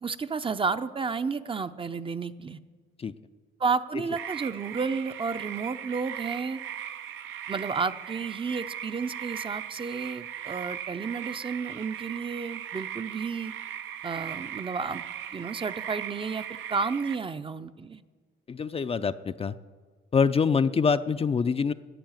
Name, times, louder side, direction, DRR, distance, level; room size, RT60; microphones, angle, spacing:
voice 1, 0.0-2.6 3.6-6.6 7.5-13.5 14.0-15.0 15.3-18.0, right 5 dB, 25° right, 11 dB, 0.6 m, -31 dB
sound 1, 4.2-17.2, right 10 dB, 80° right, 0.7 m, -38 dB
voice 2, 18.5-19.5 20.1-21.7, left 5 dB, 30° left, 11 dB, 0.4 m, -25 dB
12.0 x 8.6 x 9.0 m, 1.5 s
cardioid pair, 90°, 20 cm